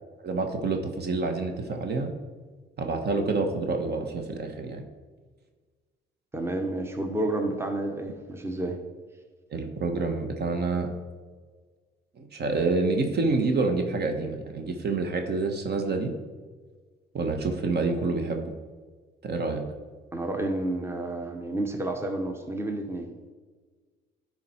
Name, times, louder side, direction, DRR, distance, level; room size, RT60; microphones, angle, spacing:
voice 1, 0.2-2.1 2.8-4.8 9.5-10.9 12.2-16.1 17.1-18.5 19.2-19.6, right 3 dB, 55° right, 5 dB, 1.2 m, -27 dB
voice 2, 6.3-8.8 20.1-23.1, right 1 dB, 10° right, 4 dB, 0.9 m, -30 dB
10.5 x 4.4 x 4.4 m, 1.4 s
cardioid pair, 90°, 20 cm